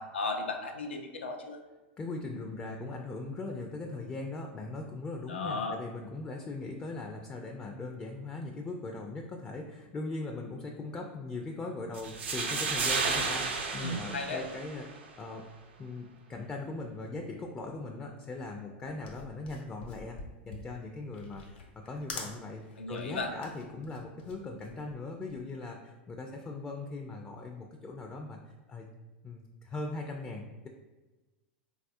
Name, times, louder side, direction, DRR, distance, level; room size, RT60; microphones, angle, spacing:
voice 1, 0.0-1.6 5.3-5.8 13.8-14.4 22.8-23.3, left 3 dB, 90° left, 3 dB, 0.5 m, -35 dB
voice 2, 2.0-15.5 15.8-20.2 20.5-28.4 28.7-28.9 29.2-30.7, left 3 dB, 20° left, 2 dB, 0.4 m, -40 dB
sound 1, 11.9-15.0, right 4 dB, 80° right, 0.6 m, -32 dB
sound 2, 19.0-25.5, left 3 dB, 70° left, 0.9 m, -46 dB
4.0 x 2.4 x 2.6 m, 1.2 s
hypercardioid pair, 105°, 6 cm